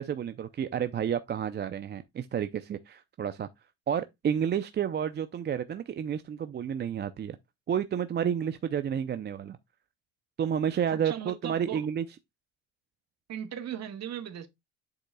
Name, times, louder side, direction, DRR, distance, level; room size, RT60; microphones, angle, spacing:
voice 1, 0.0-3.5 3.9-7.4 7.7-9.6 10.4-12.0, right 8 dB, 30° right, 0.5 m, -30 dB
voice 2, 8.2-8.5 10.9-11.9 13.3-14.5, right 9 dB, 50° right, 1.5 m, -38 dB
8.0 x 6.6 x 2.3 m
cardioid pair, 115°, 35 cm